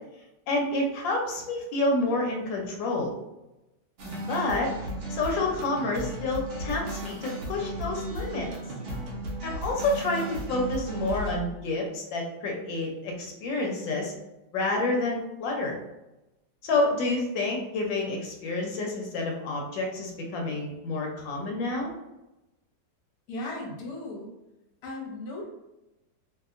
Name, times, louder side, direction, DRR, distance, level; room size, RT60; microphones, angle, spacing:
voice 1, 0.5-3.1 4.0-4.7 5.1-8.5 9.4-14.1 14.5-15.8 16.6-21.9, left 2 dB, 85° left, 0 dB, 1.3 m, -29 dB
sound 1, 4.0-11.3, right 1 dB, 80° right, 0.6 m, -35 dB
voice 2, 23.3-24.3 24.8-25.4, left 2 dB, 60° left, -1 dB, 1.2 m, -36 dB
2.8 x 2.7 x 2.4 m, 0.95 s
omnidirectional pair, 2.0 m